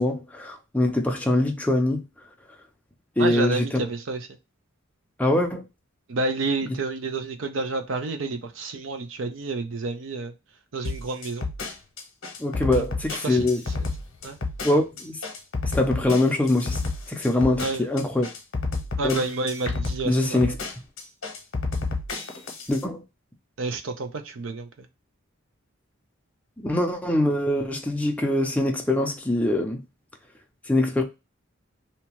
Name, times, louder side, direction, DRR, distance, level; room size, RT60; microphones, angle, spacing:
voice 1, 0.0-2.1 3.2-3.8 5.2-5.7 12.4-13.6 14.6-15.2 15.7-16.8 17.1-18.3 19.0-19.2 20.0-20.5 22.7-23.0 26.6-29.8 30.7-31.0, left 1 dB, 5° left, 0.5 m, -23 dB
voice 2, 3.2-4.3 6.1-10.3 10.7-11.5 13.1-13.6 14.2-14.4 17.6-17.9 19.0-20.6 23.6-24.9, right 3 dB, 70° right, 0.5 m, -29 dB
sound 1, 10.8-22.8, left 3 dB, 70° left, 0.8 m, -30 dB
2.7 x 2.2 x 2.9 m
head